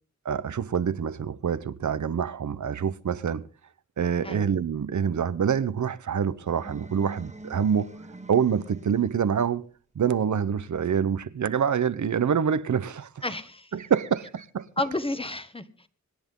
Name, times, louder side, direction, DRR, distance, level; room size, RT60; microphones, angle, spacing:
voice 1, 0.2-3.5 4.0-7.9 8.3-9.7 9.9-13.2 13.7-14.7, right 7 dB, 75° right, 0.9 m, -26 dB
sound 1, 6.4-9.3, right 2 dB, 25° right, 1.7 m, -44 dB
voice 2, 13.2-13.7 14.8-15.9, left 2 dB, 20° left, 1.6 m, -31 dB
25.5 x 10.5 x 3.8 m
wide cardioid pair, 75°, 30 cm